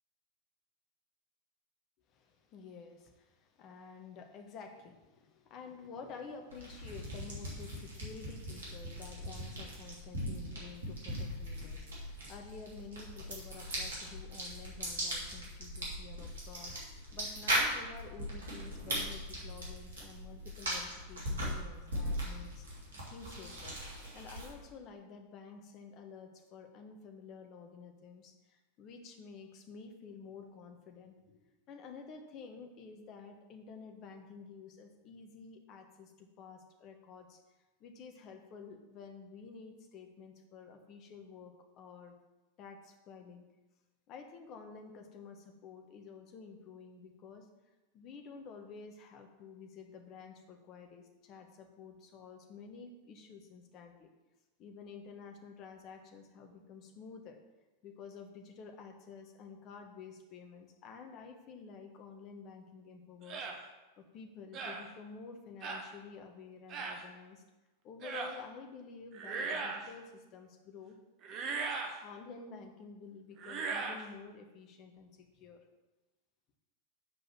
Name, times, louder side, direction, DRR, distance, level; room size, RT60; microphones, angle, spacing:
voice 1, 2.1-23.8 24.1-37.4 37.8-42.1 42.6-43.4 44.1-47.5 47.9-54.1 54.6-57.4 57.8-63.5 64.0-67.4 67.8-71.0 72.0-75.6, left 5 dB, 35° left, 4 dB, 1.3 m, -51 dB
sound 1, 6.5-24.7, equal, 65° right, 2.7 m, -39 dB
sound 2, 63.3-63.6 64.5-64.8 65.6-65.9 66.7-67.0 68.0-68.3 69.1-69.9 71.2-72.0 73.4-74.0, right 4 dB, 35° right, 1.2 m, -38 dB
8.1 x 5.4 x 5.9 m, 1.1 s
figure-of-eight pair, 90°, 0 cm